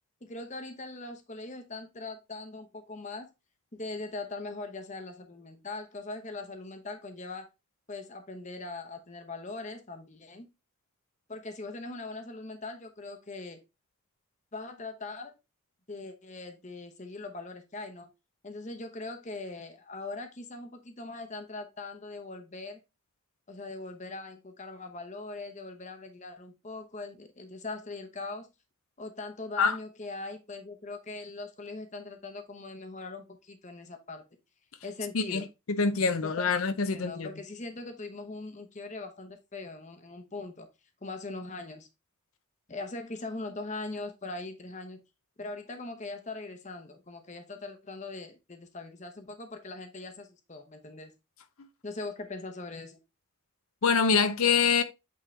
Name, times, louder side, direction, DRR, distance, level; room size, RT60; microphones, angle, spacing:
voice 1, 0.2-3.3 3.7-7.5 7.9-10.5 11.3-13.6 14.5-15.3 15.9-18.1 18.4-22.8 23.5-28.5 29.0-34.2 34.8-35.5 36.2-36.5 36.9-40.7 41.0-41.9 42.7-45.0 45.4-51.1 51.8-53.0, left 3 dB, 35° left, 0.9 m, -41 dB
voice 2, 35.8-37.3 53.8-54.8, left 5 dB, 80° left, 0.6 m, -25 dB
8.5 x 3.8 x 3.2 m
head